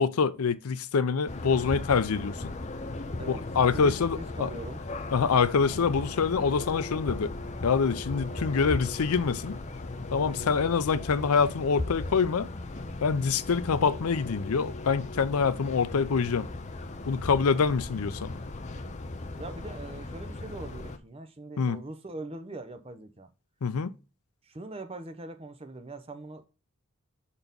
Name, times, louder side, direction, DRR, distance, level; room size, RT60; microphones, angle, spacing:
voice 1, 0.0-2.5 3.3-4.5 5.1-7.3 7.6-9.6 10.1-12.5 13.0-16.5 17.1-18.3 21.6-21.8 23.6-23.9, left 5 dB, 80° left, 0.5 m, -25 dB
sound 1, 1.3-21.0, left 2 dB, 30° left, 0.6 m, -37 dB
voice 2, 3.7-4.8 10.4-10.6 19.4-23.3 24.4-26.5, right 2 dB, 25° right, 0.7 m, -41 dB
5.8 x 4.2 x 5.2 m
head